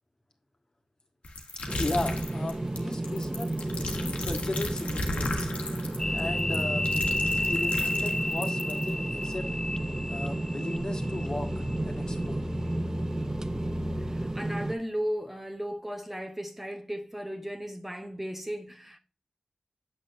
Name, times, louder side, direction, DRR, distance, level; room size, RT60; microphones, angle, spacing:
sound 1, 1.2-8.9, left 2 dB, 90° left, 1.4 m, -35 dB
sound 2, 1.7-14.8, right 2 dB, 25° right, 0.5 m, -33 dB
voice 1, 1.8-5.5 6.1-6.9 7.2-9.5 10.1-11.5 11.8-12.4, left 2 dB, 40° left, 1.6 m, -36 dB
sound 3, 6.0-14.6, left 1 dB, 20° left, 0.5 m, -33 dB
voice 2, 13.0-19.0, equal, 10° right, 1.0 m, -36 dB
7.5 x 6.5 x 2.6 m
cardioid pair, 55°, 2 cm